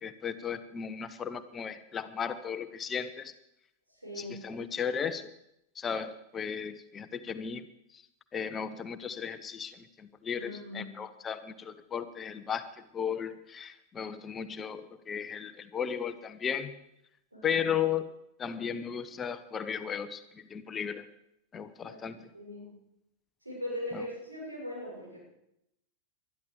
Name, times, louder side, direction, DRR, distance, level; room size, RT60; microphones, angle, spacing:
voice 1, 0.0-3.3 4.2-5.3 5.8-7.6 8.3-16.7 17.4-18.0 18.4-21.0 21.5-22.2, left 7 dB, 20° left, 11 dB, 0.9 m, -35 dB
voice 2, 3.9-4.5 10.4-11.0 17.3-17.7 21.8-22.7 23.4-25.2, left 1 dB, 85° right, -3 dB, 7.0 m, -40 dB
20.5 x 12.5 x 5.1 m, 0.82 s
figure-of-eight pair, 90°, 0 cm